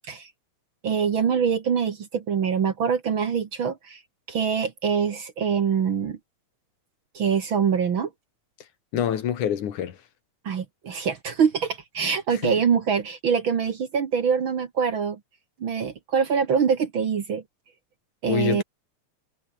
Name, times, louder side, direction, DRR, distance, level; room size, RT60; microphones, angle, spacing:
voice 1, 0.8-4.0 4.3-6.2 7.1-8.1 10.5-15.2 15.6-17.4 18.2-18.6, right 6 dB, 50° right, 1.9 m, -24 dB
voice 2, 8.9-10.0 12.3-12.5 18.3-18.6, left 9 dB, 80° left, 3.5 m, -26 dB
omnidirectional pair, 3.5 m